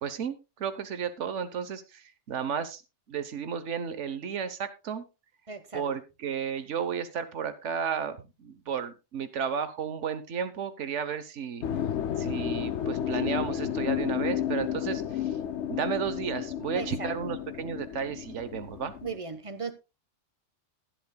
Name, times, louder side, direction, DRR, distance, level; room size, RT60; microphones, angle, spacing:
voice 1, 0.0-2.8 3.1-5.1 5.7-11.6 12.2-15.4 15.7-18.9, right 7 dB, 85° right, 1.3 m, -33 dB
voice 2, 5.5-5.8 16.7-17.3 19.0-19.7, right 4 dB, 30° right, 1.1 m, -37 dB
sound 1, 11.6-19.2, left 10 dB, 75° left, 1.0 m, -32 dB
20.5 x 7.8 x 2.3 m
omnidirectional pair, 1.2 m